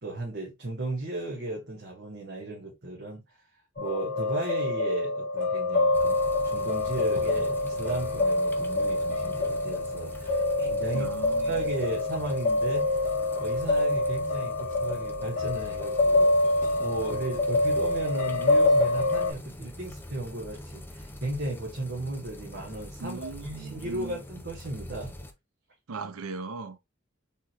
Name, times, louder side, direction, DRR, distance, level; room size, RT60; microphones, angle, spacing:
voice 1, 0.0-3.2 3.8-6.2 6.4-11.1 11.4-12.8 13.4-16.5 16.8-25.2, right 2 dB, 55° right, 1.4 m, -35 dB
sound 1, 3.8-19.3, left 2 dB, 40° left, 1.7 m, -26 dB
sound 2, 5.9-25.3, left 1 dB, 10° left, 0.6 m, -44 dB
voice 2, 10.9-11.5 23.0-24.2 25.9-26.8, right 3 dB, 85° right, 0.6 m, -38 dB
4.3 x 3.6 x 2.9 m
head